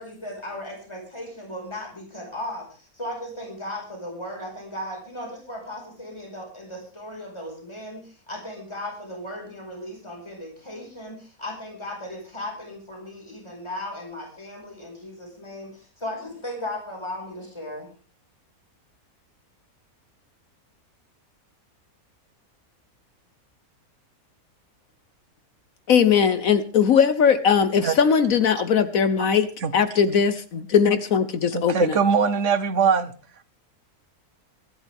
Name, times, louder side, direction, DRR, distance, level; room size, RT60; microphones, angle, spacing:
voice 1, 0.0-17.9, left 1 dB, 20° left, 0 dB, 5.1 m, -36 dB
voice 2, 25.9-29.5 29.7-32.0, left 7 dB, 65° left, 11 dB, 1.3 m, -19 dB
voice 3, 31.5-33.1, right 6 dB, 55° right, 13 dB, 1.3 m, -21 dB
24.5 x 11.5 x 3.5 m, 0.37 s
omnidirectional pair, 1.6 m